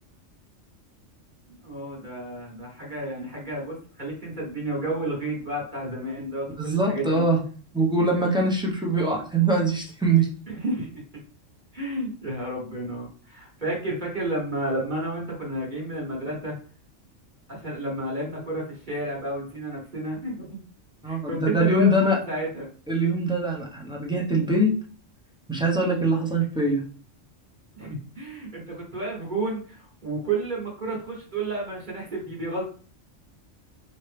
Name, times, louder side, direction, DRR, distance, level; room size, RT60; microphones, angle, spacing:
voice 1, 1.5-7.2 10.5-11.0 11.7-16.6 17.5-20.6 21.0-22.7 27.7-32.6, right 2 dB, 40° right, -3 dB, 1.4 m, -31 dB
voice 2, 6.6-7.4 7.7-10.3 21.0-22.2 22.9-24.7 25.5-26.9, right 2 dB, 5° right, -2 dB, 0.8 m, -23 dB
4.4 x 2.9 x 3.3 m, 0.41 s
omnidirectional pair, 1.3 m